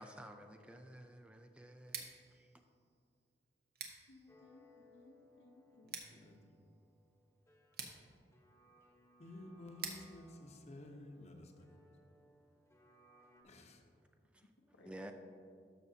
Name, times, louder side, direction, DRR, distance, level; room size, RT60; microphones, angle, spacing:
voice 1, 0.0-2.5 14.3-14.4 14.8-15.1, right 1 dB, 5° right, 5 dB, 0.4 m, -52 dB
Scissors, 1.8-11.6, right 6 dB, 60° right, 0.9 m, -53 dB
voice 2, 4.1-5.9 14.6-15.1, left 2 dB, 85° left, 3 dB, 0.8 m, -63 dB
sound 1, 4.3-13.4, left 1 dB, 15° left, 1.0 m, -67 dB
voice 3, 5.8-6.6 9.2-11.9 13.4-13.8, left 1 dB, 40° left, 4 dB, 0.8 m, -53 dB
12.5 x 6.0 x 2.7 m, 2.3 s
head